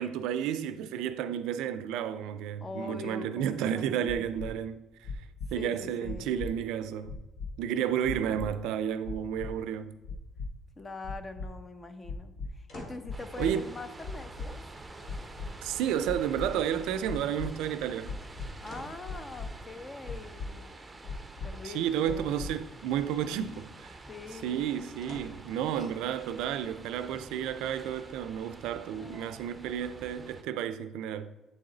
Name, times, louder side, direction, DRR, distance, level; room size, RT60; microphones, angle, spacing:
voice 1, 0.0-4.8 5.5-7.1 7.6-9.9 13.4-13.7 15.6-18.2 21.6-24.0 24.3-31.3, right 9 dB, 85° right, 0.4 m, -32 dB
voice 2, 2.6-4.2 5.6-6.3 8.2-8.5 10.8-14.6 18.6-20.7 21.4-22.3 24.1-24.7 25.7-25.9 28.9-29.5, left 3 dB, 30° left, 0.6 m, -43 dB
sound 1, 4.1-4.5 5.0-5.5 6.0-6.5 7.0-7.5 8.0-8.5 9.0-9.5 10.0-10.5 11.0-11.5 12.0-12.5 13.0-13.5 14.0-14.5 15.0-15.5 16.0-16.5 17.0-17.5 18.0-18.5 19.0-19.5 20.0-20.5 21.0-21.5 22.0-22.5, left 4 dB, 70° left, 0.6 m, -37 dB
sound 2, 12.7-13.1 15.6-16.4 17.3-17.8 18.6-19.1 22.7-23.2 25.0-25.6 26.2-26.3, left 1 dB, 55° left, 1.6 m, -48 dB
sound 3, 13.1-30.4, right 2 dB, 15° right, 0.6 m, -48 dB
8.4 x 3.9 x 3.9 m
cardioid pair, 90°, 0 cm